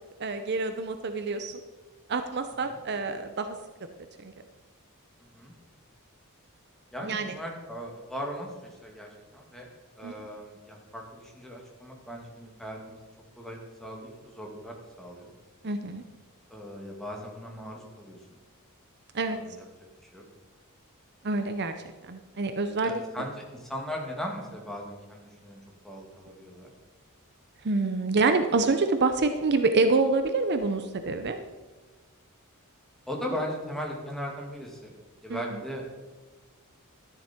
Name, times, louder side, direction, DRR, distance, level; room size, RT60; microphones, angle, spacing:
voice 1, 0.2-1.5 2.1-3.5 4.2-4.3 7.0-7.3 10.0-10.1 15.6-16.0 19.1-19.4 21.2-21.7 22.1-23.0 27.6-31.4 35.3-35.6, right 3 dB, 50° right, 8 dB, 0.7 m, -26 dB
voice 2, 6.9-9.7 10.0-13.1 13.4-15.3 16.5-18.2 19.2-19.6 20.0-20.2 22.8-26.7 33.1-34.9 35.2-36.0, equal, ahead, 0 dB, 2.2 m, -38 dB
12.5 x 11.0 x 4.4 m, 1.2 s
head